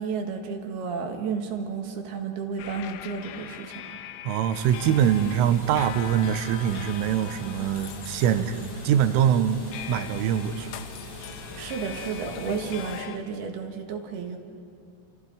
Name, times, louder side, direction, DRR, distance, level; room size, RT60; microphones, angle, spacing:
voice 1, 0.0-4.0 11.5-14.4, right 5 dB, 60° right, 3 dB, 3.1 m, -32 dB
sound 1, 2.6-13.2, left 11 dB, 80° left, 3.2 m, -42 dB
voice 2, 4.3-10.7, right 9 dB, 85° right, 11 dB, 3.4 m, -24 dB
sound 2, 4.5-13.0, left 2 dB, 65° left, 9.8 m, -42 dB
28.5 x 27.0 x 5.0 m, 2.5 s
omnidirectional pair, 5.8 m